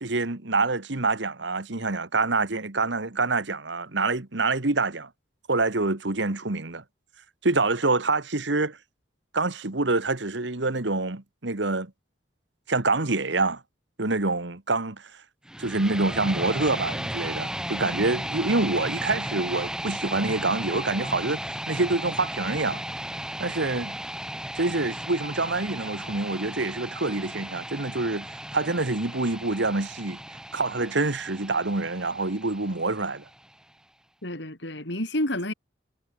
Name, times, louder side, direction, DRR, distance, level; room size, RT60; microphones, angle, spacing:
voice 1, 0.0-5.1 5.5-6.8 7.4-8.8 9.3-11.9 12.7-13.6 14.0-15.1 15.6-21.4 21.7-22.8 23.4-24.0 24.5-28.3 28.5-30.2 30.5-33.2, right 3 dB, 65° right, 1.6 m, -26 dB
sound 1, 15.4-33.5, right 1 dB, 5° right, 1.6 m, -35 dB
voice 2, 34.2-35.5, left 1 dB, 65° left, 5.0 m, -29 dB
head